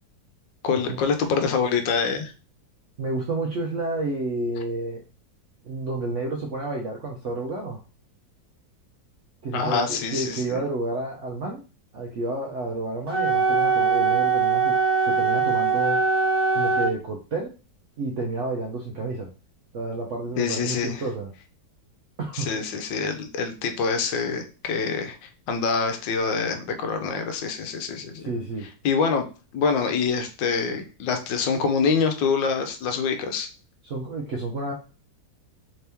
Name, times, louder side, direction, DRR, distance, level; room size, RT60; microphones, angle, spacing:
voice 1, 0.6-2.3 9.5-10.6 20.4-21.0 22.3-28.3 28.8-29.2 29.5-33.5, left 5 dB, 80° left, 7 dB, 1.3 m, -25 dB
voice 2, 3.0-5.0 5.6-7.8 9.4-11.6 11.9-16.0 16.5-17.5 18.0-19.3 19.7-21.3 22.2-22.5 28.2-28.7 33.8-34.7, right 2 dB, 70° right, 0 dB, 0.7 m, -30 dB
Wind instrument woodwind instrument, 13.1-17.0, right 5 dB, 20° right, 0.7 m, -21 dB
3.5 x 2.8 x 3.4 m, 0.34 s
omnidirectional pair, 2.0 m